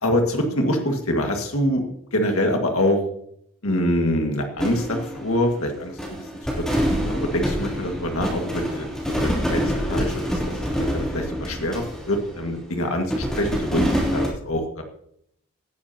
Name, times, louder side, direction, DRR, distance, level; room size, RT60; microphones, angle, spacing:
voice 1, 0.0-1.8 2.1-3.0 3.6-6.1 6.6-10.4 10.8-13.8 14.1-14.8, left 1 dB, 70° left, 3 dB, 1.9 m, -25 dB
sound 1, 4.6-5.7 6.0-12.7 13.1-14.3, equal, 5° left, 3.3 m, -26 dB
18.0 x 10.5 x 2.9 m, 0.73 s
head